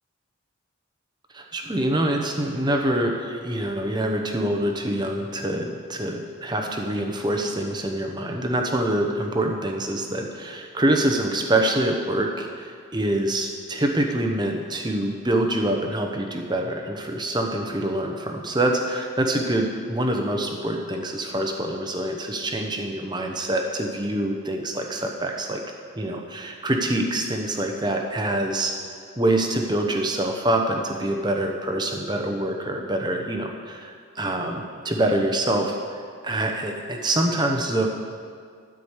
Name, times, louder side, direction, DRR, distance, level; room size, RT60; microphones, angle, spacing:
voice 1, 1.3-25.6 25.9-28.7 29.2-37.9, right 1 dB, 20° right, 3 dB, 0.9 m, -25 dB
13.0 x 5.1 x 8.2 m, 2.1 s
head